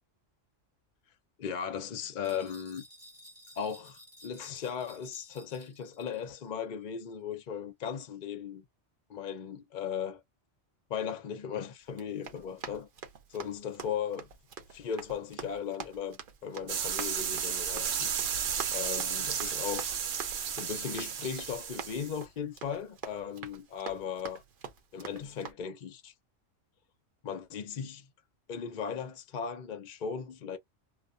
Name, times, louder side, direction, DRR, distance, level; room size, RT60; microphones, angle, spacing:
voice 1, 1.4-2.9 3.6-8.6 9.1-10.2 10.9-12.9 13.3-14.3 14.7-18.1 18.5-20.0 20.5-24.4 24.9-26.1 27.2-28.1 28.5-30.6, left 7 dB, 55° left, 0.5 m, -37 dB
sound 1, 2.2-6.4, equal, 15° right, 1.0 m, -54 dB
Run, 11.9-25.5, right 7 dB, 50° right, 0.7 m, -46 dB
sound 2, 16.7-22.2, right 8 dB, 80° right, 1.0 m, -33 dB
2.2 x 2.2 x 2.5 m
omnidirectional pair, 1.3 m